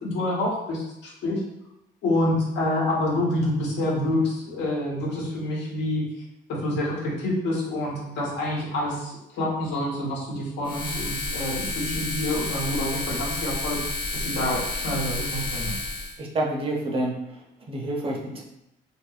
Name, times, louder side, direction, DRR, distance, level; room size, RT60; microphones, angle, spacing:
voice 1, 0.0-1.4 2.0-6.1 6.5-13.8 14.1-15.8, left 1 dB, 80° left, -3 dB, 1.1 m, -27 dB
sound 1, 10.6-16.2, left 2 dB, 25° left, 0.6 m, -30 dB
voice 2, 16.2-17.4 17.7-18.4, right 1 dB, 30° right, -1 dB, 0.5 m, -28 dB
3.4 x 2.9 x 2.4 m, 0.87 s
cardioid pair, 160°, 18 cm